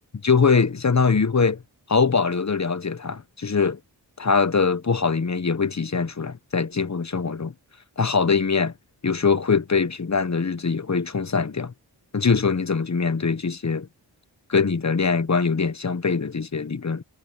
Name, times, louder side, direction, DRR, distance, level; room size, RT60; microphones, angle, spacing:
voice 1, 0.2-1.6 1.9-3.8 4.2-7.5 8.0-8.7 9.0-11.7 12.1-13.9 14.5-17.0, left 5 dB, 40° left, 1.2 m, -22 dB
cardioid pair, 40°, 43 cm